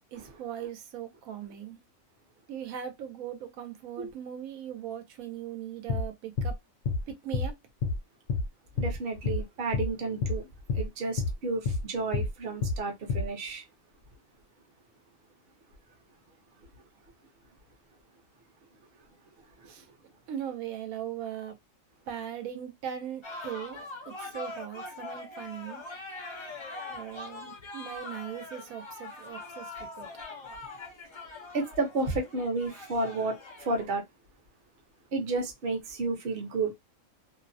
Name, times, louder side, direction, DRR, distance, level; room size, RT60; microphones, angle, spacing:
voice 1, 0.1-1.8 2.5-6.6 7.1-7.6 19.7-19.9 20.3-21.6 22.1-25.8 26.9-30.1, right 9 dB, 90° right, 1.0 m, -39 dB
sound 1, 5.9-6.1 6.4-6.5 6.9-7.0 7.3-7.5 7.8-8.0 8.3-8.5 8.8-8.9 9.3-9.4 9.7-9.9 10.2-10.4 10.7-10.9 11.2-11.3 11.7-11.8 12.1-12.3 12.6-12.8 13.1-13.3, left 4 dB, 80° left, 1.0 m, -28 dB
voice 2, 8.8-10.5 10.7-13.6 19.6-19.7 31.5-34.0 35.1-36.7, right 3 dB, 50° right, 0.8 m, -31 dB
sound 2, 23.2-33.9, left 3 dB, 50° left, 0.3 m, -42 dB
2.6 x 2.0 x 2.5 m
omnidirectional pair, 1.4 m